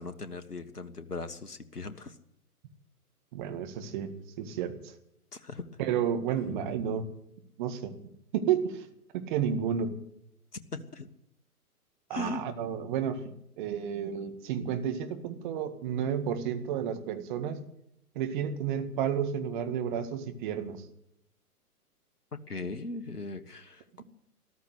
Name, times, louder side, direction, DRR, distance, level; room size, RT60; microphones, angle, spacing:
voice 1, 0.0-2.2 5.3-5.8 10.7-11.1 12.1-12.4 22.5-24.0, left 2 dB, 80° left, 11 dB, 1.5 m, -39 dB
voice 2, 3.3-4.9 5.8-7.1 7.6-8.0 8.3-8.9 9.1-10.0 12.1-17.6 18.2-20.9, right 8 dB, 30° right, 8 dB, 1.9 m, -31 dB
14.0 x 13.0 x 8.0 m, 0.76 s
figure-of-eight pair, 125°, 46 cm